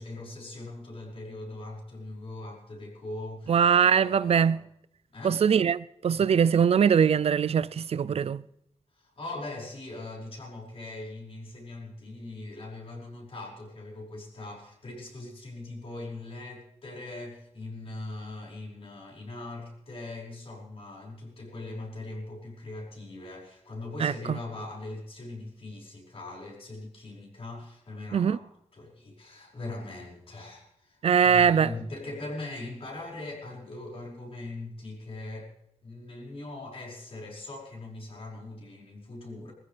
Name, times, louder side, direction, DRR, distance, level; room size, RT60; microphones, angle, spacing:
voice 1, 0.0-4.6 5.1-5.4 6.1-6.4 8.9-35.5 35.8-39.5, left 2 dB, 55° left, 5.5 m, -41 dB
voice 2, 3.5-4.6 5.2-8.4 24.0-24.4 28.1-28.4 31.0-31.7, right 7 dB, 60° right, 0.5 m, -22 dB
21.0 x 15.0 x 3.4 m
wide cardioid pair, 110°, 12 cm